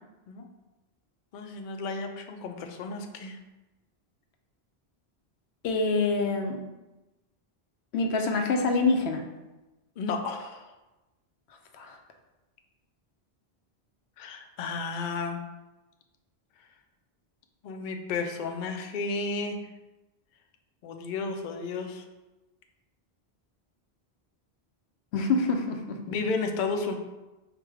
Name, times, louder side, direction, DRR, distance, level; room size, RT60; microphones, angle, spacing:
voice 1, 1.3-3.4 10.0-10.7 14.2-15.4 17.6-19.6 20.8-22.0 26.1-26.9, left 4 dB, 60° left, 4 dB, 0.6 m, -32 dB
voice 2, 5.6-6.6 7.9-9.2 11.7-12.0 25.1-26.0, left 3 dB, 85° left, 4 dB, 0.9 m, -26 dB
4.7 x 2.2 x 4.7 m, 1.1 s
omnidirectional pair, 1.1 m